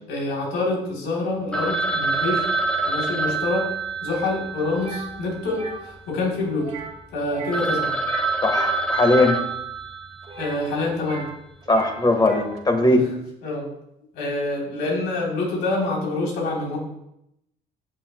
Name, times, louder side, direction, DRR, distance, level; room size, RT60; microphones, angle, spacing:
voice 1, 0.1-2.5 2.8-3.7 4.0-6.7 7.1-8.0 10.4-11.3 12.9-13.1 13.4-13.7 14.1-16.8, left 2 dB, 90° left, -3 dB, 3.6 m, -26 dB
Telephone, 1.5-5.9 6.1-6.2 6.8-6.9 7.2-7.3 7.5-10.5, right 3 dB, 5° left, 1.1 m, -26 dB
sound 1, 4.8-5.1 5.5-5.8 6.6-7.0 7.3-7.7 7.9-9.5 10.2-11.4 11.6-12.6, right 4 dB, 35° right, 1.6 m, -38 dB
voice 2, 8.4-9.4 11.7-13.1, left 2 dB, 25° left, 4 dB, 1.5 m, -19 dB
16.0 x 8.0 x 2.3 m, 0.81 s
cardioid pair, 110°, 17 cm